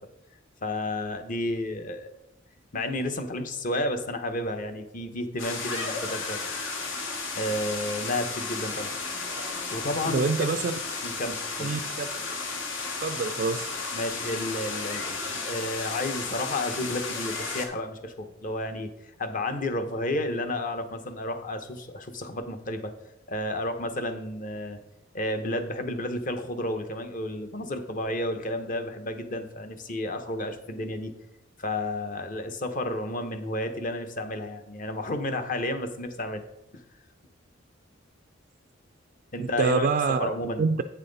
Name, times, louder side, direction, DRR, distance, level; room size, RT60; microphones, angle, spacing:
voice 1, 0.6-2.2 2.7-6.4 7.3-8.9 9.7-10.4 11.0-11.7 13.9-18.9 19.2-22.9 23.3-24.8 25.1-31.1 31.6-36.4 39.3-39.9 40.2-40.6, left 1 dB, 45° left, 7 dB, 0.8 m, -31 dB
sound 1, 5.4-17.7, left 4 dB, 80° left, 1.2 m, -33 dB
voice 2, 10.1-10.8 11.6-12.1 13.0-13.7 39.4-40.3 40.6-40.8, right 4 dB, 50° right, 6 dB, 0.3 m, -26 dB
8.6 x 5.7 x 3.9 m, 0.87 s
head